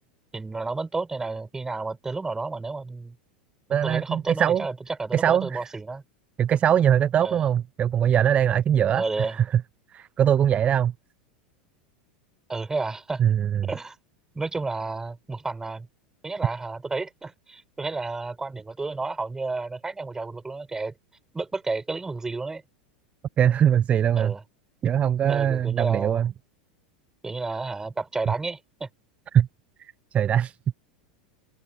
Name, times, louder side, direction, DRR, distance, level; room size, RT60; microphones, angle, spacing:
voice 1, 0.3-3.2 3.7-6.0 7.2-7.4 8.9-9.4 12.5-13.2 13.7-13.9 14.3-15.9 16.2-20.9 21.3-22.6 24.2-24.4 25.3-26.2 27.2-28.9, right 3 dB, 10° right, 6.3 m, -31 dB
voice 2, 3.7-4.7 5.1-5.7 6.4-9.6 9.9-10.9 13.2-13.7 23.4-24.3 24.8-26.3 28.3-28.4 29.3-29.5 29.8-30.6, right 9 dB, 30° right, 1.0 m, -22 dB
figure-of-eight pair, 85°, 5 cm